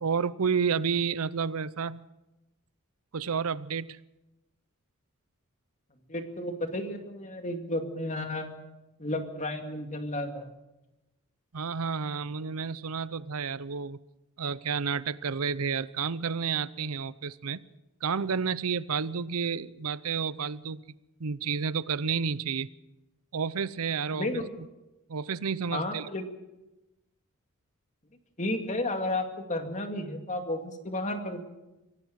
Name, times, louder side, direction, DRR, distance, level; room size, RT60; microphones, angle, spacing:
voice 1, 0.0-2.0 3.1-4.0 11.5-14.0 14.4-17.6 18.0-20.8 21.2-22.7 23.3-24.4 25.1-26.1, right 6 dB, 70° right, 18 dB, 0.7 m, -30 dB
voice 2, 6.1-8.6 9.0-10.5 24.1-24.4 25.7-26.2 28.4-31.4, left 1 dB, 35° left, 5 dB, 2.3 m, -32 dB
24.5 x 17.5 x 6.4 m, 0.98 s
head